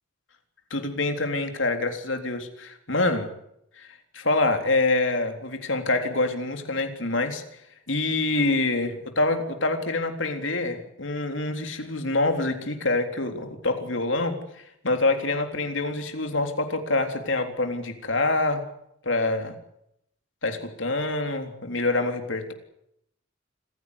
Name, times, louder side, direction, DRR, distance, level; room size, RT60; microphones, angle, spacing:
voice 1, 0.7-3.3 3.8-7.4 7.9-18.6 19.0-19.6 20.4-22.5, left 2 dB, 70° left, 6 dB, 3.7 m, -26 dB
27.0 x 16.0 x 9.8 m, 0.77 s
head